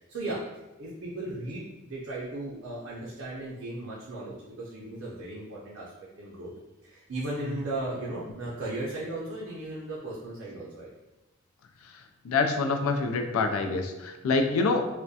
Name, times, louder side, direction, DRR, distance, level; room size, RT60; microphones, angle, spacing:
voice 1, 0.1-0.4 0.8-6.5 6.8-10.9, right 2 dB, 70° right, -6 dB, 0.5 m, -36 dB
voice 2, 11.8-14.9, left 3 dB, 90° left, 6 dB, 0.3 m, -27 dB
2.3 x 2.1 x 2.6 m, 1.0 s
head